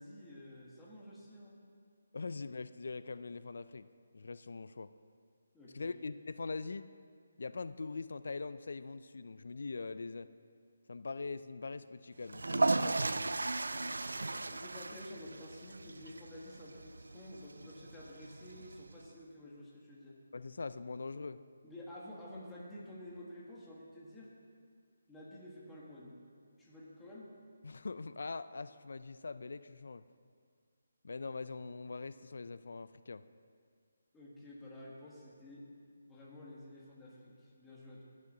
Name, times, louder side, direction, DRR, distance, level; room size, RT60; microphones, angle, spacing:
voice 1, 0.0-1.6 5.5-5.9 14.5-20.2 21.6-24.3 25.1-26.2 26.6-27.3 34.1-35.7 36.0-38.0, left 1 dB, 10° left, -6 dB, 1.6 m, -51 dB
voice 2, 2.1-3.9 4.1-4.9 5.7-6.8 7.4-10.3 10.9-13.4 20.3-21.4 27.6-30.0 31.0-33.2, left 4 dB, 65° left, 14 dB, 0.4 m, -42 dB
sound 1, 12.2-19.1, right 2 dB, 80° right, 0.3 m, -36 dB
15.5 x 6.5 x 3.9 m, 2.1 s
figure-of-eight pair, 155°, 0 cm